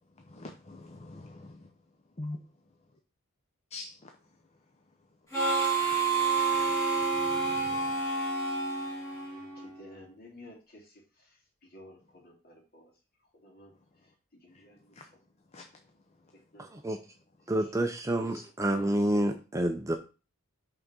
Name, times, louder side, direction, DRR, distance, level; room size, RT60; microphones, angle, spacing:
voice 1, 0.3-1.6 2.2-2.4 3.7-3.9 6.4-7.8 15.0-15.1 15.5-15.6, left 2 dB, 30° left, 3 dB, 0.7 m, -44 dB
Harmonica, 5.3-9.8, right 4 dB, 15° left, 2.8 m, -29 dB
voice 2, 9.8-10.9 11.7-12.9 13.4-13.7 14.4-14.8 16.5-16.7 18.6-19.2, equal, 45° left, -2 dB, 2.8 m, -51 dB
voice 3, 17.5-20.0, right 1 dB, 15° right, 5 dB, 0.5 m, -28 dB
5.7 x 3.9 x 6.1 m, 0.33 s
head